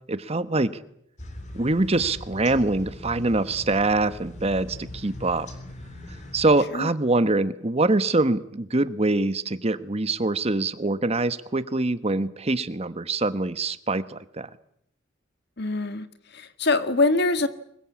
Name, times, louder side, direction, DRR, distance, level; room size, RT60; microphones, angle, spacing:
voice 1, 0.1-0.7 1.5-5.5 6.3-14.5, right 2 dB, 30° right, 13 dB, 1.2 m, -24 dB
sound 1, 1.2-6.6, left 1 dB, 40° left, 3.8 m, -40 dB
voice 2, 15.6-16.1 16.3-17.5, left 3 dB, 60° left, 11 dB, 1.8 m, -23 dB
25.5 x 22.5 x 8.5 m, 0.73 s
head